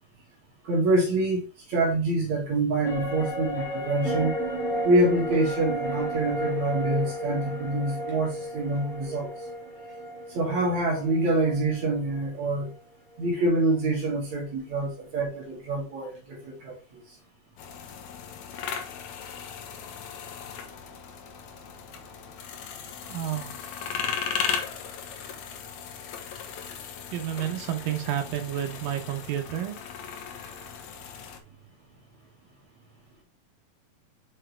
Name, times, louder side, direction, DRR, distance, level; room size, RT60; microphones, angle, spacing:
voice 1, 0.6-4.3 4.8-9.3 10.3-12.7 13.2-17.0, right 2 dB, 55° right, 3.2 m, -26 dB
sound 1, 2.8-12.4 12.7-12.8, right 1 dB, ahead, 2.6 m, -33 dB
sound 2, 17.6-31.4, left 7 dB, 65° left, 2.0 m, -37 dB
voice 2, 23.1-23.5 27.1-29.8, right 11 dB, 75° right, 2.8 m, -30 dB
6.3 x 6.0 x 3.4 m
omnidirectional pair, 4.1 m